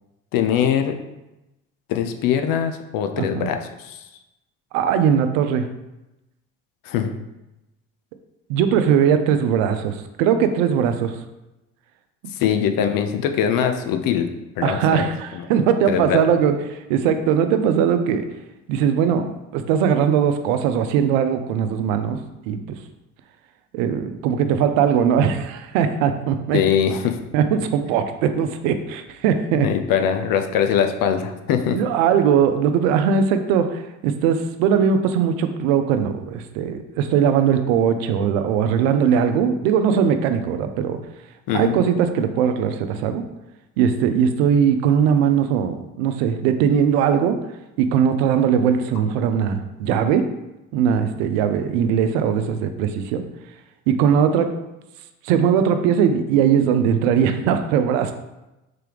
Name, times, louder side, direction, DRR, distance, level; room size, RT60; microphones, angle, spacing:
voice 1, 0.3-1.0 1.9-4.0 6.8-7.1 12.3-14.3 14.6-15.5 15.9-16.3 26.5-27.2 29.6-31.8 41.5-41.8, left 8 dB, 60° left, 7 dB, 0.6 m, -22 dB
voice 2, 3.2-3.5 4.7-5.7 8.5-11.2 14.6-18.3 18.7-22.2 22.5-22.6 23.7-26.6 27.3-29.7 31.7-41.0 41.5-43.2 43.8-47.4 47.8-50.3 50.7-53.2 53.9-54.5 55.2-58.1, right 8 dB, 80° right, 8 dB, 0.5 m, -20 dB
3.8 x 3.3 x 3.3 m, 0.97 s
hypercardioid pair, 60°, 38 cm